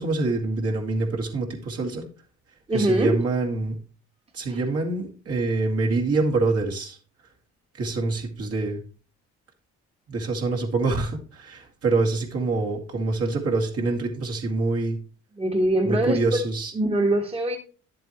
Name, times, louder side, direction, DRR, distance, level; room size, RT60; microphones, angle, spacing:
voice 1, 0.0-2.1 2.7-3.8 4.3-7.0 7.7-8.8 10.1-15.0 15.8-16.7, right 3 dB, 50° right, 2.2 m, -25 dB
voice 2, 2.7-3.2 4.5-4.6 15.4-16.4 16.7-17.6, right 1 dB, 20° right, 1.6 m, -23 dB
10.5 x 7.7 x 3.1 m
cardioid pair, 90°, 30 cm